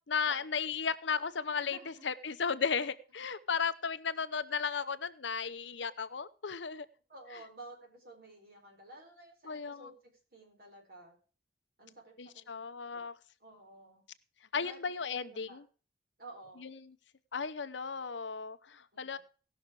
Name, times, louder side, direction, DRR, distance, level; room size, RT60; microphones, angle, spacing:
voice 1, 0.1-6.9 9.4-9.9 12.2-13.1 14.5-15.6 16.6-16.7 17.3-19.2, left 6 dB, 85° left, 13 dB, 0.8 m, -35 dB
voice 2, 1.5-2.0 7.1-9.9 10.3-11.2 11.8-12.4 12.9-13.1 13.4-14.0 14.5-15.6 16.2-16.7 18.9-19.2, right 2 dB, 55° right, 2 dB, 4.3 m, -52 dB
17.0 x 6.4 x 4.8 m, 0.38 s
head